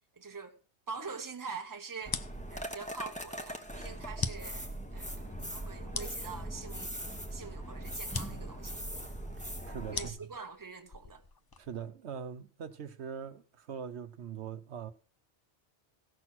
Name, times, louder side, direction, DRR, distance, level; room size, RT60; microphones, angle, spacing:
voice 1, 0.1-0.6 0.9-2.2 2.5-7.0 7.3-8.8 9.9-11.2, right 5 dB, 20° right, 1.0 m, -44 dB
sound 1, 2.0-11.9, left 4 dB, 30° left, 0.4 m, -43 dB
sound 2, 2.1-10.1, right 1 dB, 5° left, 1.1 m, -41 dB
voice 2, 9.7-10.3 11.6-14.9, right 7 dB, 75° right, 1.1 m, -42 dB
16.0 x 6.2 x 5.9 m
omnidirectional pair, 1.2 m